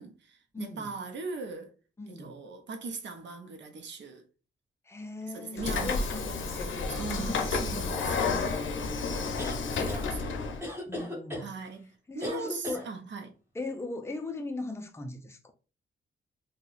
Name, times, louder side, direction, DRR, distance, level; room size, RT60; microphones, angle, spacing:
voice 1, 0.0-1.7 2.1-4.2 5.3-8.7 9.0-9.4 9.7-10.4 11.4-13.4, right 4 dB, 65° right, 0.6 m, -40 dB
voice 2, 0.5-0.9 2.0-2.4 4.8-7.4 8.1-8.9 10.9-11.5 12.1-12.9 13.5-15.5, left 2 dB, 15° left, 0.4 m, -39 dB
Train / Sliding door, 5.6-10.6, left 4 dB, 75° left, 0.6 m, -31 dB
sound 1, 9.4-10.1 10.6-11.5 12.2-12.9, left 1 dB, 10° right, 1.1 m, -36 dB
2.7 x 2.1 x 3.9 m
wide cardioid pair, 140°, 20 cm